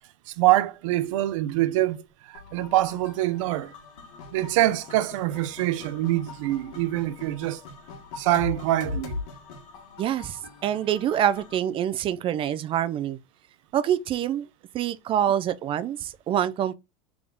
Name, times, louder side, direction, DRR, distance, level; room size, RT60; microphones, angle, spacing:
voice 1, 0.3-3.7 4.3-7.6 8.2-9.2, right 15 dB, 85° right, 0.5 m, -25 dB
sound 1, 2.3-11.6, left 3 dB, 85° left, 1.6 m, -41 dB
voice 2, 10.0-13.2 13.7-14.5 14.7-16.7, right 10 dB, 35° right, 0.3 m, -26 dB
3.5 x 3.5 x 3.7 m
supercardioid pair, 130°, 16 cm